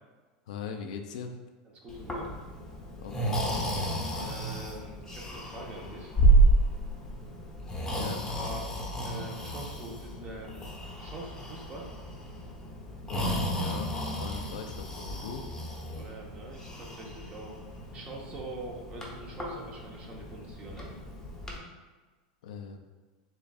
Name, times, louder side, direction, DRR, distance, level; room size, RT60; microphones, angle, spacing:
voice 1, 0.5-1.3 3.0-3.5 7.9-8.3 13.0-13.9 14.2-15.5 22.4-22.8, left 6 dB, 80° left, 5 dB, 0.5 m, -40 dB
voice 2, 1.8-2.3 4.2-6.1 8.3-8.7 9.0-10.7 11.0-11.9 15.9-17.6 17.9-20.9, right 2 dB, 30° right, -1 dB, 1.0 m, -44 dB
Breathing, 1.9-21.6, right 2 dB, 10° left, 0.9 m, -31 dB
6.8 x 2.5 x 2.4 m, 1.3 s
supercardioid pair, 120°, 4 cm